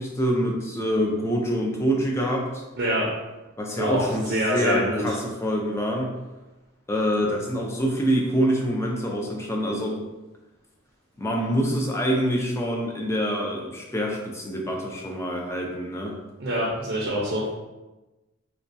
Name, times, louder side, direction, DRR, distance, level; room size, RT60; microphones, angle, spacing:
voice 1, 0.0-2.6 3.6-6.1 6.9-10.0 11.2-16.2, equal, 15° left, -1 dB, 0.4 m, -26 dB
voice 2, 2.8-3.1 3.8-5.2 16.4-17.4, equal, 50° right, -4 dB, 0.6 m, -25 dB
4.2 x 2.2 x 2.6 m, 1.1 s
head